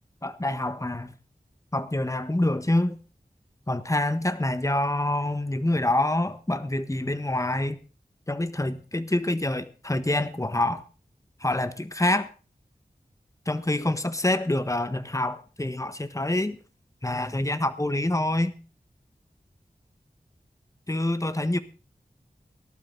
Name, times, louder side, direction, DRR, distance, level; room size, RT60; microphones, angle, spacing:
voice 1, 0.2-1.1 1.7-3.0 3.7-7.8 8.3-10.8 11.4-12.3 13.4-16.6 17.0-18.5 20.9-21.6, left 1 dB, 20° left, 1.4 m, -26 dB
18.5 x 11.5 x 4.0 m
wide cardioid pair, 55°, 15 cm